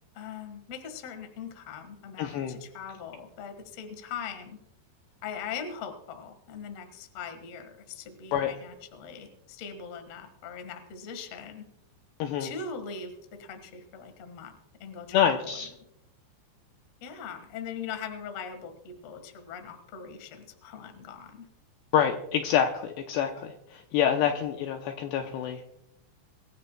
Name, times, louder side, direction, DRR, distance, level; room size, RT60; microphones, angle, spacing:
voice 1, 0.1-4.6 5.2-11.6 12.4-14.5 14.8-15.7 17.0-21.5 24.2-24.6, left 6 dB, 60° left, 7 dB, 1.7 m, -41 dB
voice 2, 2.2-2.6 8.3-8.5 12.2-12.5 15.1-15.7 21.9-25.6, left 9 dB, 80° left, 4 dB, 2.5 m, -27 dB
24.5 x 13.5 x 2.2 m, 0.83 s
omnidirectional pair, 5.4 m